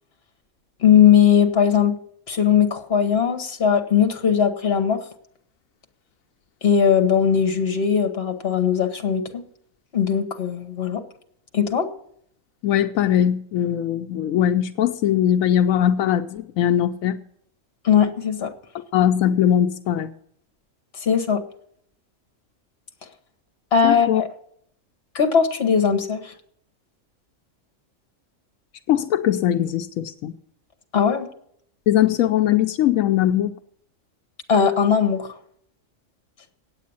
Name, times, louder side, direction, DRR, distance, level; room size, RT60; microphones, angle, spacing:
voice 1, 0.8-2.0 2.3-5.0 6.6-9.4 9.9-11.0 11.5-11.9 17.8-18.5 21.0-21.4 23.7-24.3 25.1-26.3 30.9-31.3 34.5-35.3, left 7 dB, 50° left, 7 dB, 1.5 m, -19 dB
voice 2, 12.6-17.2 18.7-20.1 23.8-24.2 28.9-30.3 31.9-33.5, left 10 dB, 85° left, 7 dB, 1.0 m, -20 dB
8.7 x 8.4 x 8.5 m, 0.68 s
omnidirectional pair, 1.4 m